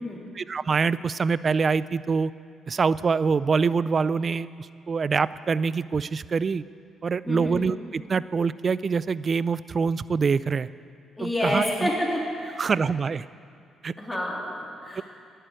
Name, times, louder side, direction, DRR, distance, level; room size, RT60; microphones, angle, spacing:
voice 1, 0.4-2.3 2.7-6.6 7.0-10.7 11.2-11.9 12.6-13.2 13.8-13.9 15.0-15.1, right 5 dB, 40° right, 17 dB, 0.3 m, -25 dB
voice 2, 7.2-7.6 11.2-12.6 14.0-15.0, left 1 dB, 15° left, -3 dB, 3.2 m, -28 dB
11.0 x 9.4 x 8.9 m, 2.3 s
cardioid pair, 90°, 0 cm